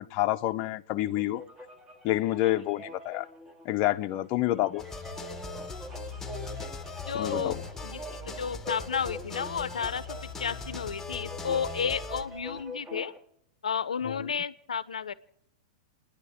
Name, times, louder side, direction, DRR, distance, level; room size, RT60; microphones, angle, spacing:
voice 1, 0.0-1.4 2.0-3.3 3.6-4.8 7.1-7.6, left 15 dB, 45° left, 0.6 m, -28 dB
sound 1, 1.1-13.2, left 1 dB, 20° right, 1.7 m, -44 dB
sound 2, 4.8-12.2, left 4 dB, 10° left, 1.3 m, -40 dB
sound 3, 4.9-12.6, right 3 dB, 60° right, 3.4 m, -51 dB
voice 2, 7.1-13.1 13.6-15.1, left 7 dB, 90° left, 0.6 m, -32 dB
29.5 x 10.0 x 3.5 m
hypercardioid pair, 110°, 4 cm